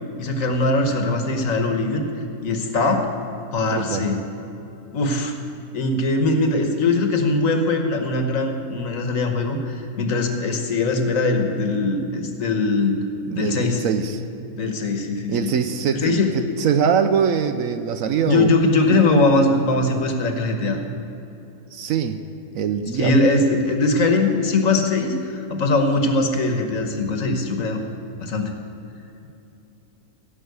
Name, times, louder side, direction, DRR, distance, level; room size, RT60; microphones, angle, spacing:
voice 1, 0.2-2.1 2.4-3.1 3.5-4.2 4.9-5.3 5.7-13.0 13.3-13.8 14.5-15.6 15.9-16.3 18.3-20.8 23.0-27.8 28.2-28.5, left 2 dB, 60° left, 5 dB, 1.5 m, -21 dB
voice 2, 3.6-4.1 13.2-14.2 15.3-18.5 19.4-19.5 21.7-22.2 22.5-23.2, right 7 dB, 70° right, 9 dB, 1.0 m, -23 dB
16.5 x 5.7 x 8.1 m, 2.9 s
omnidirectional pair, 1.6 m